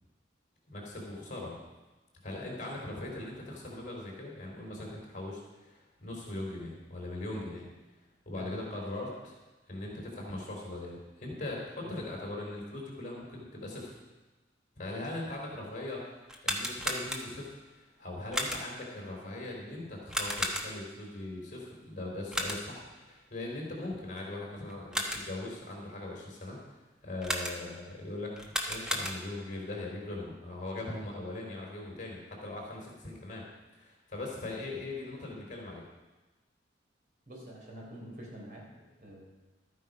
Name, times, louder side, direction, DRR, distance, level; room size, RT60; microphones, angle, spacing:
voice 1, 0.7-1.6 2.2-7.7 8.3-9.4 9.7-14.0 14.8-26.6 27.0-33.5 33.8-35.8, left 2 dB, 45° left, -1 dB, 3.6 m, -40 dB
sound 1, 16.2-17.6 18.3-18.9 20.1-21.0 22.3-22.9 24.7-25.5 27.2-27.9 28.4-29.5, equal, 5° right, 1.2 m, -35 dB
voice 2, 37.3-38.6 39.0-39.2, right 1 dB, 50° right, -3 dB, 4.1 m, -46 dB
13.0 x 9.3 x 5.3 m, 1.2 s
head